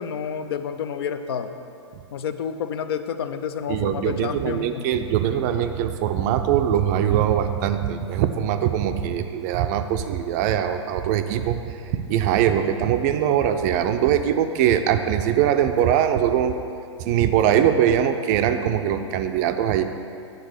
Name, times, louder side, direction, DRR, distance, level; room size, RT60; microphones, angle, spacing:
voice 1, 0.0-1.5 2.1-4.8, left 7 dB, 55° left, 9 dB, 0.5 m, -29 dB
voice 2, 3.7-16.6 17.0-19.8, right 10 dB, 35° right, 8 dB, 0.4 m, -22 dB
8.1 x 3.9 x 6.4 m, 2.6 s
hypercardioid pair, 115°, 15 cm